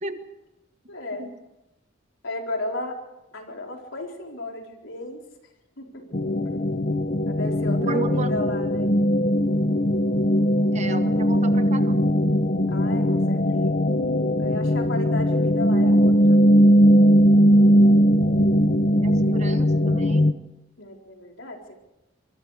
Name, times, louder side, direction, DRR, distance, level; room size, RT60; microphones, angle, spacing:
voice 1, 0.9-1.3 2.2-3.0 3.3-5.2 5.8-6.1 7.3-8.9 12.7-13.8 14.4-16.6 20.8-21.8, left 2 dB, 90° left, 1 dB, 4.0 m, -34 dB
sound 1, 6.1-20.3, equal, 45° left, 0.9 m, -19 dB
voice 2, 7.8-8.3 10.7-12.0 19.0-20.3, right 2 dB, 35° right, 9 dB, 1.3 m, -32 dB
24.0 x 24.0 x 4.9 m, 0.93 s
head